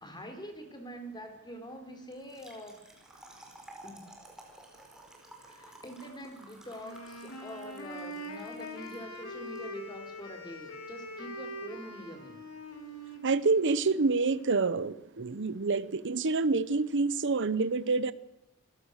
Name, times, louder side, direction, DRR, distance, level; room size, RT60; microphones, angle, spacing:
voice 1, 0.0-2.8 3.8-4.0 5.4-12.4, equal, 20° left, 5 dB, 3.8 m, -45 dB
Trickle dribble / Fill (with liquid), 2.1-9.6, right 1 dB, 5° right, 4.8 m, -53 dB
Wind instrument woodwind instrument, 6.8-14.7, equal, 80° left, 3.6 m, -43 dB
voice 2, 13.2-18.1, right 3 dB, 60° right, 15 dB, 0.9 m, -27 dB
27.5 x 16.5 x 6.5 m, 0.86 s
head